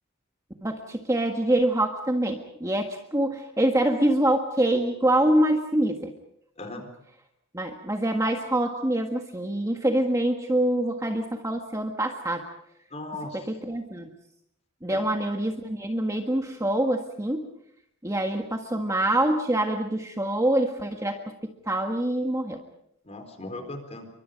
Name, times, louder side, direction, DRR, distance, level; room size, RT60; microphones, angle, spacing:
voice 1, 0.6-6.1 7.5-12.5 13.5-14.1 14.8-17.5 18.0-22.6, right 1 dB, 15° right, 4 dB, 1.6 m, -25 dB
voice 2, 6.6-6.9 12.9-13.5 14.9-15.1 23.0-24.1, left 2 dB, 30° left, 6 dB, 4.2 m, -38 dB
29.0 x 24.5 x 5.2 m, 0.72 s
head